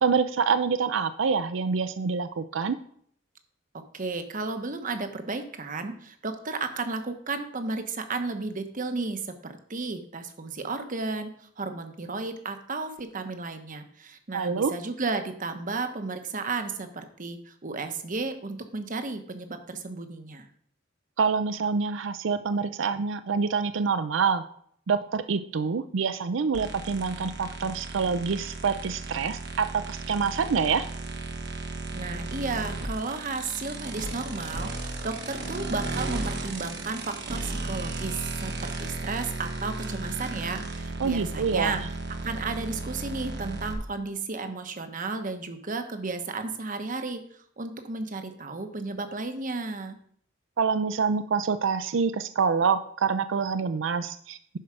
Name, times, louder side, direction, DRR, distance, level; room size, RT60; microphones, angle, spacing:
voice 1, 0.0-2.8 14.3-14.7 21.2-24.4 24.9-30.9 41.0-41.9 50.6-54.6, right 5 dB, 90° right, 11 dB, 0.5 m, -26 dB
voice 2, 3.9-20.5 31.9-41.8 42.2-50.0, right 3 dB, 45° right, 8 dB, 1.0 m, -33 dB
sound 1, 26.5-43.7, right 2 dB, 60° right, 1.4 m, -35 dB
10.5 x 4.7 x 6.1 m, 0.63 s
head